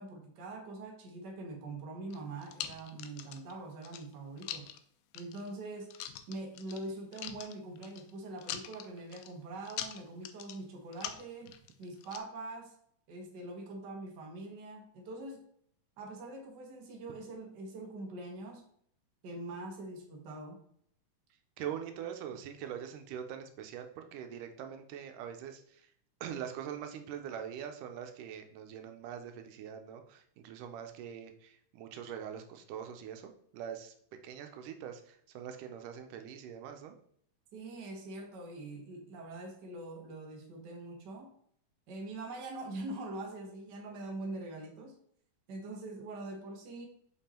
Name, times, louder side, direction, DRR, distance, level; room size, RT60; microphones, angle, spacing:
voice 1, 0.0-4.7 5.1-5.9 6.3-12.7 13.1-15.4 16.0-18.6 19.2-20.6 37.5-41.3 41.9-44.9 45.5-46.9, right 2 dB, 45° right, 1 dB, 1.5 m, -43 dB
sound 1, 2.1-3.5 3.8-4.8 5.2-5.5 5.9-6.9 7.1-8.1 8.4-9.3 9.7-10.6 10.9-12.2, left 11 dB, 90° left, 2.2 m, -43 dB
voice 2, 21.6-25.9 26.2-33.9 34.2-37.0, right 9 dB, 90° right, 6 dB, 2.3 m, -43 dB
5.6 x 5.4 x 4.3 m, 0.65 s
omnidirectional pair, 3.6 m